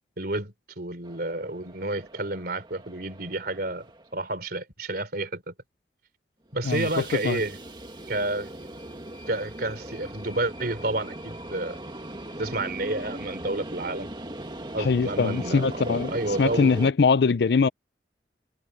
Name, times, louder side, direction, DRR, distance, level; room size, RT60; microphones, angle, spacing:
voice 1, 0.2-3.9 4.1-5.5 6.5-7.6 8.1-8.5 9.3-11.8 12.4-14.1 14.7-16.7, right 2 dB, 55° right, 3.6 m, -30 dB
sound 1, 1.0-4.2 6.5-16.9, right 1 dB, 25° right, 2.0 m, -39 dB
voice 2, 6.6-7.4 14.8-16.1 16.4-17.7, left 5 dB, 60° left, 0.4 m, -22 dB
head